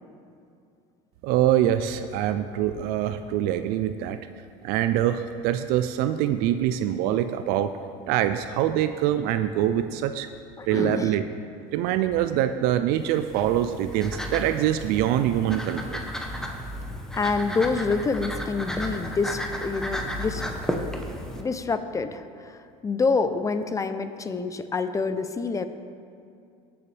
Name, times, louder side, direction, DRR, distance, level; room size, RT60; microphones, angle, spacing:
voice 1, 1.2-4.2 4.6-7.7 8.1-10.3 10.7-11.2 11.7-16.1, right 11 dB, 70° right, 10 dB, 0.4 m, -24 dB
voice 2, 10.6-11.1 17.1-20.4 21.3-25.7, left 4 dB, 20° left, 10 dB, 0.6 m, -27 dB
sound 1, 13.0-21.4, equal, 5° left, 0.9 m, -33 dB
20.0 x 7.0 x 3.4 m, 2.5 s
supercardioid pair, 105°, 16 cm